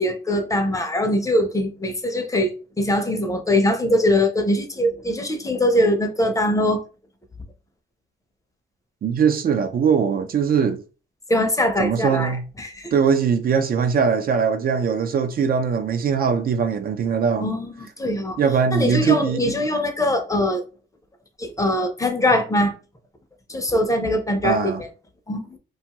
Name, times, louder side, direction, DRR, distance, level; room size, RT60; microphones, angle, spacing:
voice 1, 0.0-6.8 11.3-12.9 17.4-18.4 18.7-20.6 21.4-22.7 23.5-24.7 25.3-25.5, left 1 dB, 15° left, 0.6 m, -22 dB
voice 2, 9.0-10.8 11.8-12.4 12.9-17.5 18.4-19.5 24.4-24.8, right 6 dB, 50° right, 0.5 m, -21 dB
2.5 x 2.3 x 2.9 m
cardioid pair, 90°, 20 cm